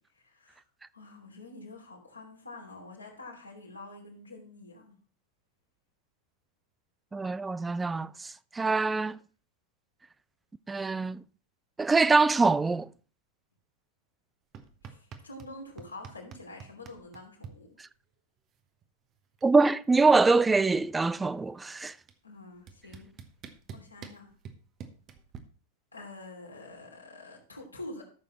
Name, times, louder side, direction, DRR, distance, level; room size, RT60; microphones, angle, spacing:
voice 1, 0.1-0.6 0.9-4.9 14.8-17.8 22.2-23.1 23.7-24.3 25.9-28.0, left 2 dB, 80° left, 2.9 m, -46 dB
voice 2, 7.1-9.2 10.7-11.2 11.8-12.9 19.4-21.9, right 3 dB, 10° right, 0.4 m, -24 dB
sound 1, 14.5-15.5 15.8-17.5 18.8-18.9 19.2-19.6 19.8-21.2 22.1-22.2 22.7-25.4, right 7 dB, 30° right, 1.1 m, -46 dB
13.5 x 6.8 x 3.0 m
figure-of-eight pair, 90°, 0 cm